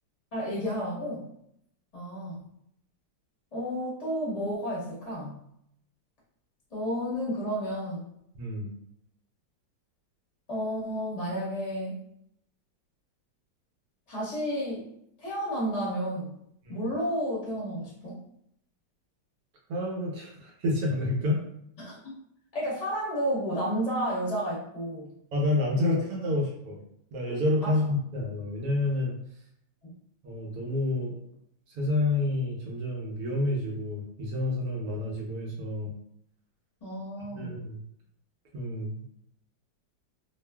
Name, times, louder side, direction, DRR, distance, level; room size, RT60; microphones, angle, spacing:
voice 1, 0.3-1.3 1.9-2.4 3.5-5.4 6.7-8.1 10.5-12.0 14.1-14.9 15.2-16.4 16.7-18.2 21.8-22.0 22.5-25.1 25.7-26.0 27.6-27.7 29.8-29.9 36.8-37.6, equal, 25° left, -6 dB, 0.8 m, -31 dB
voice 2, 8.3-8.7 19.7-21.4 25.3-26.8 27.1-29.1 30.2-31.2 31.7-35.9 37.3-37.8 38.5-39.0, left 2 dB, 65° right, -2 dB, 1.0 m, -29 dB
2.8 x 2.4 x 2.2 m, 0.73 s
omnidirectional pair, 2.0 m